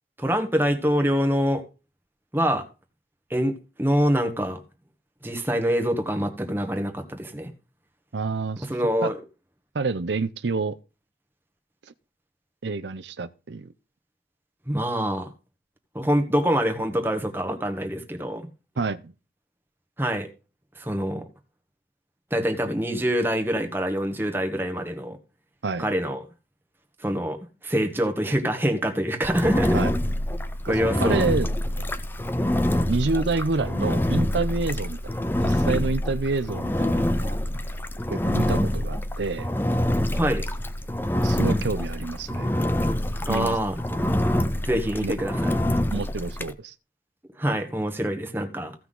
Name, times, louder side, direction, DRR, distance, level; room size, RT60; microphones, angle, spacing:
voice 1, 0.2-1.6 2.3-2.7 3.3-4.6 5.2-7.5 8.7-9.2 14.7-15.3 15.9-18.5 20.0-20.3 20.7-21.3 22.3-25.2 25.8-26.2 27.0-29.8 30.7-31.2 40.1-40.4 43.3-44.0 44.6-45.6 47.4-48.7, equal, 10° right, 1.5 m, -25 dB
voice 2, 8.1-8.7 9.0-9.1 9.7-10.8 12.6-13.7 18.8-19.1 25.6-25.9 29.7-29.9 30.6-30.7 31.0-31.5 31.8-31.9 32.9-35.0 35.4-37.4 38.1-39.5 41.1-42.5 43.3-43.6 45.0-45.2 45.9-46.7, right 3 dB, 85° right, 0.6 m, -28 dB
Engine, 29.2-46.5, left 1 dB, 10° left, 0.6 m, -26 dB
15.5 x 5.9 x 3.8 m
head